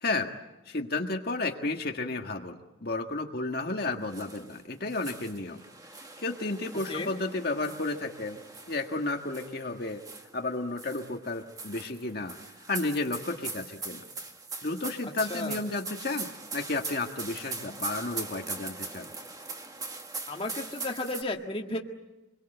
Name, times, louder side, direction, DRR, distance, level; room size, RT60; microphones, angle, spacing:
voice 1, 0.0-0.3 0.6-5.6 6.2-8.4 8.7-10.0 10.3-12.3 12.7-14.0 14.6-19.1, left 2 dB, 50° left, 3 dB, 1.6 m, -32 dB
sound 1, 4.1-4.6 4.9-10.4 10.8-21.2, right 4 dB, 20° right, 1.8 m, -41 dB
voice 2, 15.3-15.6 20.3-21.8, left 2 dB, 30° left, 2 dB, 1.8 m, -33 dB
27.0 x 22.5 x 7.9 m, 1.0 s
head